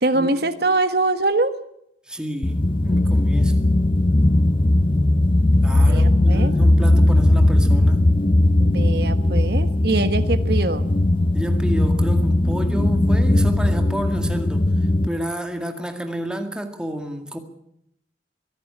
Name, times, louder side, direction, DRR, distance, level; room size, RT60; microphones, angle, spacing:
voice 1, 0.0-1.5 5.7-6.5 8.6-10.9, right 2 dB, 60° right, 1.4 m, -23 dB
voice 2, 2.1-3.7 5.6-8.1 11.3-14.7 15.0-17.4, equal, 5° right, 2.0 m, -30 dB
sound 1, 2.4-15.1, left 1 dB, 30° left, 0.7 m, -18 dB
23.5 x 11.5 x 9.9 m
head